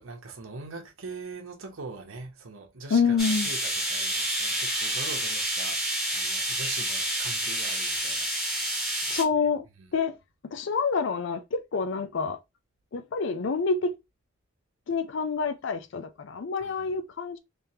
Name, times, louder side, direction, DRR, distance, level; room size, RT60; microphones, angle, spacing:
voice 1, 0.0-9.2 16.6-16.9, right 4 dB, 85° right, 0.9 m, -42 dB
voice 2, 2.9-3.5 9.1-9.7 9.9-10.1 10.5-12.4 12.9-13.9 14.9-17.4, left 5 dB, 65° left, 0.4 m, -27 dB
sound 1, 3.2-9.2, right 1 dB, ahead, 1.4 m, -29 dB
3.4 x 3.3 x 2.8 m
head